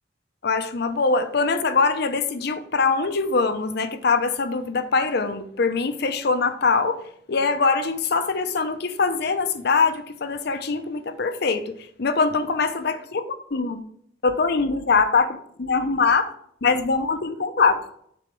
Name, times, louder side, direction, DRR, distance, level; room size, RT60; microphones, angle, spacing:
voice 1, 0.4-7.0 7.3-11.7 12.0-13.2 13.5-13.8 14.2-16.3 16.6-17.8, left 4 dB, 55° left, 0.6 m, -23 dB
6.9 x 4.0 x 6.0 m
head